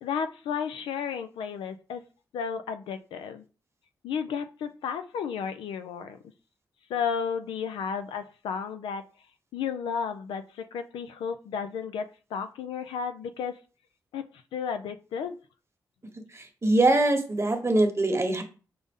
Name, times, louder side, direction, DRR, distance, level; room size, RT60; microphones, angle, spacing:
voice 1, 0.0-2.0 2.3-3.4 4.0-6.2 6.9-9.0 9.5-12.1 12.3-13.6 14.1-14.2 14.5-15.4, left 6 dB, 90° left, 9 dB, 0.4 m, -33 dB
voice 2, 16.3-18.4, right 2 dB, 35° right, 5 dB, 1.0 m, -23 dB
5.1 x 2.0 x 3.5 m, 0.35 s
supercardioid pair, 45°, 8 cm